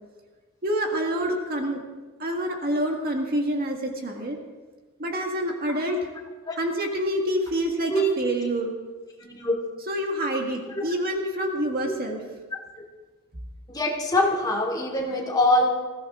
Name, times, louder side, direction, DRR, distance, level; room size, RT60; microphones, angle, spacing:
voice 1, 0.6-1.8 2.2-4.4 5.0-6.1 6.6-8.7 9.9-12.2, equal, 45° right, 2 dB, 1.8 m, -27 dB
voice 2, 9.2-9.6 10.7-10.8 11.8-11.9 13.7-15.7, left 1 dB, 20° left, -1 dB, 2.7 m, -23 dB
21.0 x 16.0 x 3.7 m, 1.3 s
head